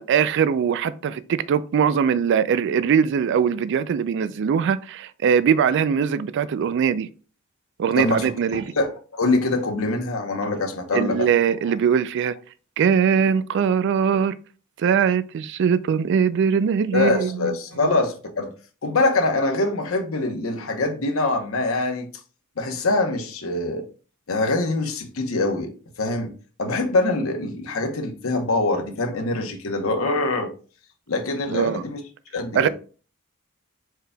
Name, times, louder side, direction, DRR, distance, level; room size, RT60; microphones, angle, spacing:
voice 1, 0.0-7.1 7.8-8.7 10.9-12.4 12.8-14.4 14.8-17.5 31.5-31.8 32.5-32.7, right 7 dB, 60° right, 0.3 m, -21 dB
voice 2, 8.0-8.9 9.2-11.3 16.9-18.5 18.8-22.1 22.6-23.8 24.3-25.7 26.0-26.3 26.6-30.5 31.1-32.0 32.3-32.7, left 2 dB, 75° left, 0.9 m, -24 dB
4.8 x 4.7 x 2.2 m
head